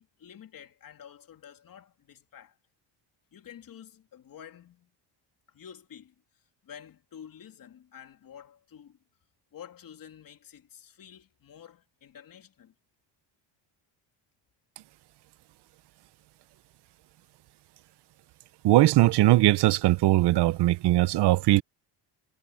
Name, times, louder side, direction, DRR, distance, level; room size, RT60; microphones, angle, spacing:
voice 1, 0.0-2.6 3.3-4.9 5.5-6.1 6.6-9.0 9.5-12.7, left 9 dB, 45° left, 3.3 m, -49 dB
voice 2, 18.6-21.6, right 16 dB, 60° right, 0.9 m, -20 dB
cardioid pair, 130°, 46 cm